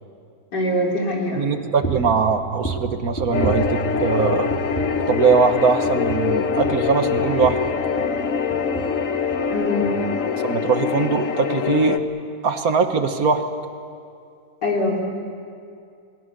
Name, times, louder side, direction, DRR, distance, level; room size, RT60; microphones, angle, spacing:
voice 1, 0.5-1.5 9.5-9.9 14.6-15.0, left 1 dB, 80° left, -1 dB, 4.1 m, -23 dB
voice 2, 1.3-4.5 5.1-7.6 9.8-10.2 10.4-12.0 12.4-13.5, right 5 dB, 60° right, 7 dB, 1.6 m, -21 dB
sound 1, 1.8-2.2 2.6-4.2 4.5-5.0 5.3-5.5 5.8-8.2 8.5-9.0 9.3-9.5 9.8-10.0, right 3 dB, 10° left, 3.5 m, -31 dB
sound 2, 3.3-12.0, left 6 dB, 55° left, 1.2 m, -24 dB
28.5 x 20.5 x 6.8 m, 2.4 s
omnidirectional pair, 1.8 m